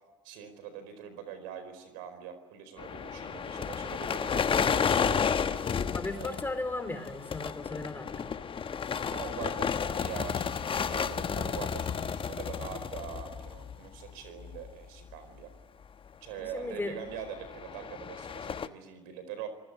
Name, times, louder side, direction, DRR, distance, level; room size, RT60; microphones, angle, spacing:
voice 1, 0.2-5.6 6.1-6.4 9.1-15.5 16.2-19.5, right 8 dB, 70° right, 10 dB, 4.6 m, -43 dB
sound 1, 2.8-14.1 14.4-14.7 15.1-15.2 16.8-18.7, left 7 dB, 35° left, 1.3 m, -32 dB
voice 2, 5.9-8.3 16.3-16.9, left 2 dB, 15° left, 8 dB, 4.4 m, -36 dB
25.5 x 20.0 x 9.8 m, 1.2 s
hypercardioid pair, 70°, 16 cm